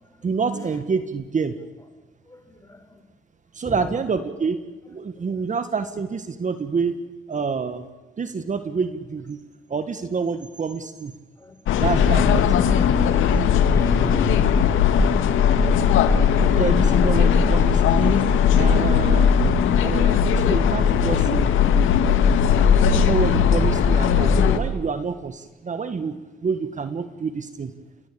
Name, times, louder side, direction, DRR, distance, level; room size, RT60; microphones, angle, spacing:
voice 1, 0.2-1.6 3.5-4.6 4.9-7.0 7.3-7.9 8.2-9.4 9.7-11.1 11.8-12.4 16.6-18.3 18.5-19.5 19.8-21.5 22.9-27.7, right 5 dB, 40° right, 10 dB, 1.7 m, -27 dB
voice 2, 2.3-3.1 3.6-3.9 5.2-5.4 11.4-12.3 13.0-13.1 13.7-14.7, right 1 dB, 15° left, 7 dB, 4.9 m, -36 dB
sound 1, 11.7-24.6, left 7 dB, 80° left, 2.1 m, -18 dB
28.0 x 21.5 x 8.7 m, 1.1 s
cardioid pair, 90°, 20 cm